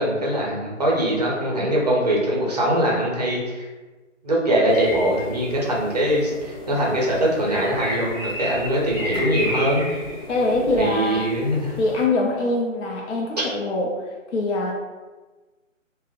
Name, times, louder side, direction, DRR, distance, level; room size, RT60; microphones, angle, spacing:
voice 1, 0.0-3.7 4.2-9.9 10.8-11.8 13.4-13.5, right 1 dB, 35° right, -3 dB, 0.5 m, -22 dB
sound 1, 4.7-12.0, equal, 10° left, 1.2 m, -32 dB
voice 2, 10.3-11.4 11.8-14.7, left 2 dB, 65° left, -2 dB, 0.5 m, -23 dB
3.6 x 2.1 x 2.4 m, 1.2 s
figure-of-eight pair, 160°, 39 cm